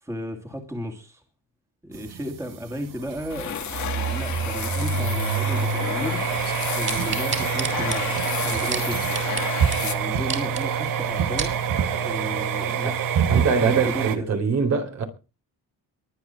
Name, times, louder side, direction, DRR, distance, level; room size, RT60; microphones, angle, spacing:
voice 1, 0.0-1.2 1.8-9.2 9.5-11.6 12.0-13.0 13.5-14.3, equal, 10° right, 2.9 m, -34 dB
sound 1, 1.9-14.2, right 7 dB, 65° right, 2.1 m, -26 dB
sound 2, 3.3-10.4, left 10 dB, 55° left, 1.7 m, -32 dB
sound 3, 6.9-9.5 9.7-9.8 10.2-10.6 11.1-11.6 12.2-12.3, right 5 dB, 30° right, 5.0 m, -30 dB
voice 2, 13.3-15.0, right 5 dB, 50° right, 4.0 m, -23 dB
23.5 x 8.9 x 4.5 m
cardioid pair, 160°, 35 cm